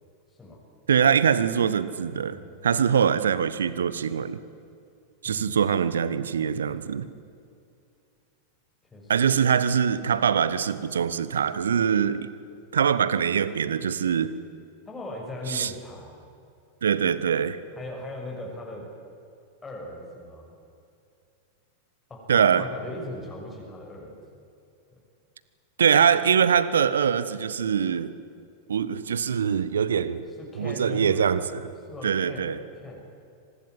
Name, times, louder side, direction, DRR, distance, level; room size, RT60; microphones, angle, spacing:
voice 1, 0.9-4.4 5.2-7.1 9.1-12.3 12.7-14.3 15.5-15.7 16.8-17.6 22.3-22.7 25.8-28.1 28.7-30.2 30.6-31.7 32.0-32.6, right 7 dB, 65° right, 15 dB, 1.1 m, -23 dB
voice 2, 2.2-2.6 5.2-5.6 8.9-9.1 14.9-16.2 17.8-18.8 19.6-20.5 22.1-24.2 30.4-31.3 31.9-33.0, left 1 dB, 15° left, -1 dB, 6.2 m, -39 dB
25.0 x 19.5 x 9.4 m, 2.5 s
figure-of-eight pair, 90°, 0 cm